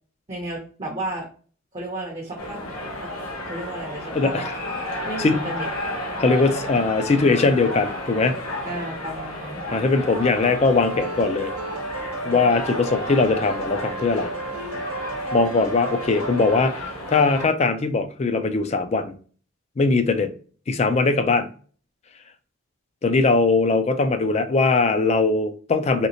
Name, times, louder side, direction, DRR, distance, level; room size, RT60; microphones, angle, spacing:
voice 1, 0.3-1.3 1.7-2.6 3.0-3.1 3.4-4.4 5.0-5.7 8.6-9.8, right 1 dB, 25° right, 0.6 m, -33 dB
sound 1, 2.4-17.5, left 1 dB, 85° left, 0.9 m, -32 dB
voice 2, 4.1-4.5 5.2-5.5 6.2-8.4 9.7-11.5 12.2-14.3 15.3-19.1 19.8-20.3 20.7-21.5 23.0-26.1, left 3 dB, 30° left, 0.3 m, -20 dB
sound 2, 10.6-16.6, right 3 dB, 85° right, 0.7 m, -33 dB
3.1 x 2.9 x 2.7 m
head